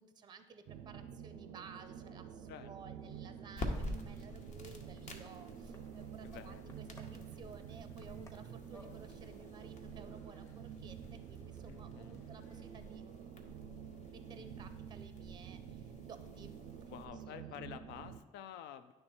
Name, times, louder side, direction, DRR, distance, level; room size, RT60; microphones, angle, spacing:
voice 1, 0.0-13.0 14.1-16.6 16.8-16.9 17.3-17.6, right 5 dB, 25° right, 10 dB, 0.5 m, -56 dB
sound 1, 0.7-18.2, right 8 dB, 85° right, 0.5 m, -49 dB
sound 2, 3.0-13.0, equal, 15° left, 0.8 m, -62 dB
sound 3, 3.5-17.0, left 1 dB, 45° left, 0.9 m, -49 dB
voice 2, 6.2-6.7 11.7-12.3 16.9-18.9, left 9 dB, 80° left, 11 dB, 0.5 m, -50 dB
9.5 x 3.2 x 4.4 m, 1.3 s
cardioid pair, 110°, 17 cm